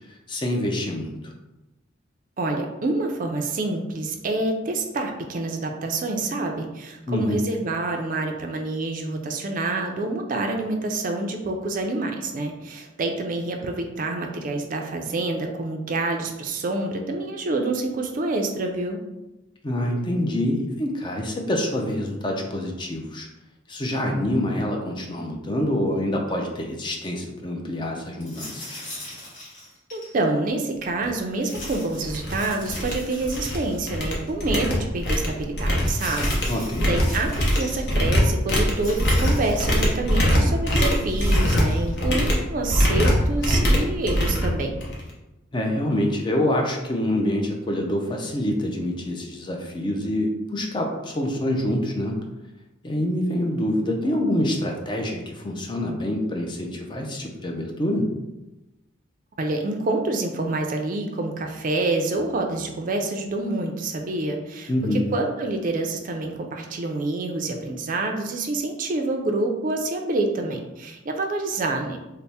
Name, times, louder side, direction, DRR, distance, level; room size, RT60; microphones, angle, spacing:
voice 1, 0.3-1.3 7.1-7.4 19.6-23.3 23.7-28.8 36.5-36.9 45.5-52.1 52.8-58.0 64.7-65.0, left 1 dB, 25° left, 1 dB, 0.4 m, -26 dB
voice 2, 2.4-19.0 29.9-44.7 59.4-72.0, right 2 dB, 45° right, 3 dB, 0.4 m, -27 dB
sound 1, 28.2-30.1 31.4-34.0 34.3-34.4 35.8-37.8 38.7-40.0 40.9-41.9, left 1 dB, 40° left, 1.2 m, -40 dB
sound 2, 31.0-31.1 31.5-31.7 32.0-32.3 32.7-33.6 33.9-45.1, equal, 55° left, 0.8 m, -22 dB
3.3 x 2.0 x 4.1 m, 0.98 s
head